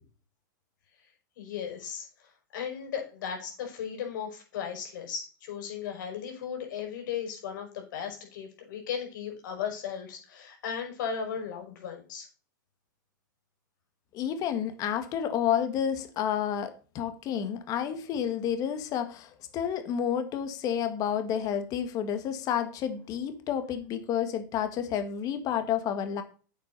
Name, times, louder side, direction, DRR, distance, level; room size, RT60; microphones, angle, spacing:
voice 1, 1.4-2.1 2.5-12.3, left 7 dB, 70° left, 5.7 m, -36 dB
voice 2, 14.1-26.2, left 9 dB, 35° left, 1.7 m, -30 dB
9.4 x 7.7 x 4.1 m
supercardioid pair, 140°, 11 cm